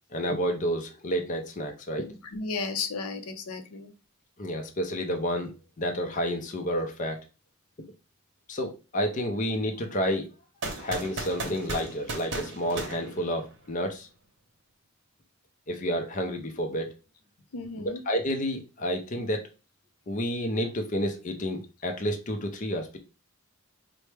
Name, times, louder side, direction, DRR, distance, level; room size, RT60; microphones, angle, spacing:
voice 1, 0.1-2.1 4.4-5.5 5.8-7.2 8.5-10.3 10.8-14.1 15.7-16.9 17.8-19.5 20.1-23.0, equal, 35° left, 0.5 m, -30 dB
voice 2, 2.1-3.9 17.5-18.0, left 4 dB, 80° left, 0.5 m, -34 dB
sound 1, 10.6-13.8, right 2 dB, 55° right, 0.8 m, -36 dB
4.3 x 2.1 x 3.2 m
head